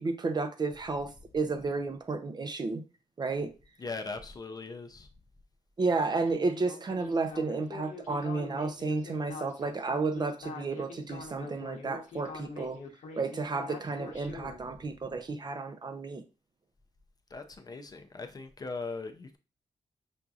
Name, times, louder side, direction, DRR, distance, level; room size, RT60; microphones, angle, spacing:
voice 1, 0.0-2.8 3.2-3.5 5.8-12.8 13.2-16.2, right 3 dB, 35° right, 0.5 m, -32 dB
voice 2, 3.8-5.1 17.3-19.4, left 3 dB, 30° left, 0.4 m, -39 dB
Speech synthesizer, 6.3-14.6, left 4 dB, 80° left, 0.9 m, -44 dB
5.7 x 2.6 x 2.4 m
wide cardioid pair, 125°, 13 cm